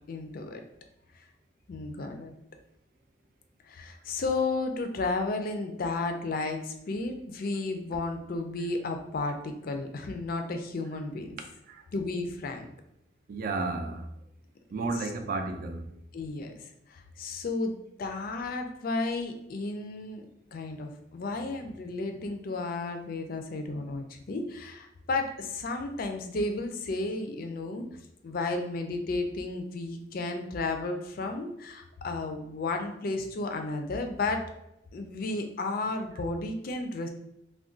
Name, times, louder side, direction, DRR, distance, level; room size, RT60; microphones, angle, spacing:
voice 1, 0.1-0.6 1.7-2.3 3.6-11.4 11.9-12.7 16.1-20.2 20.5-27.9 28.2-34.4 34.9-37.1, left 3 dB, 50° left, 5 dB, 0.4 m, -33 dB
voice 2, 13.3-14.1 14.7-15.9, right 3 dB, 50° right, 5 dB, 0.4 m, -32 dB
2.4 x 2.2 x 3.7 m, 0.81 s
head